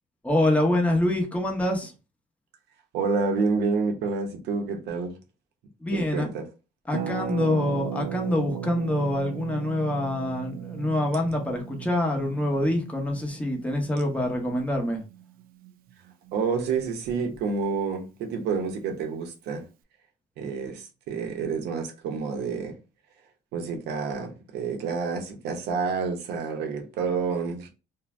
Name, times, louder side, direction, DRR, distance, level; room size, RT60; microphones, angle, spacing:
voice 1, 0.2-1.9 5.8-6.3 6.9-15.0, left 1 dB, 10° left, 0.8 m, -25 dB
voice 2, 2.9-5.2 5.9-6.4 16.3-19.6 20.4-22.8 23.5-27.7, right 5 dB, 80° right, 0.8 m, -28 dB
Harp, 6.9-16.5 16.8-16.9 17.1-17.4, right 10 dB, 60° right, 0.4 m, -37 dB
2.6 x 2.2 x 3.2 m
cardioid pair, 110°, 17 cm